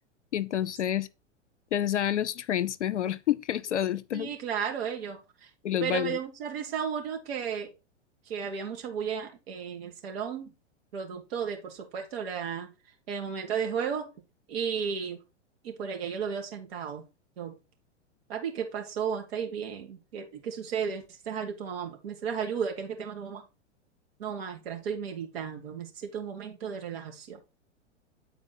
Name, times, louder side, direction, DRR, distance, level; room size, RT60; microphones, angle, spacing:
voice 1, 0.3-1.1 1.7-4.3 5.6-6.2, left 11 dB, 70° left, 0.6 m, -28 dB
voice 2, 4.1-5.5 5.8-7.7 8.3-10.5 10.9-12.7 13.1-14.1 14.5-15.2 15.6-17.0 17.4-17.6 18.3-23.4 24.2-27.4, right 7 dB, 55° right, 2.0 m, -34 dB
8.7 x 4.3 x 4.1 m
figure-of-eight pair, 100°, 36 cm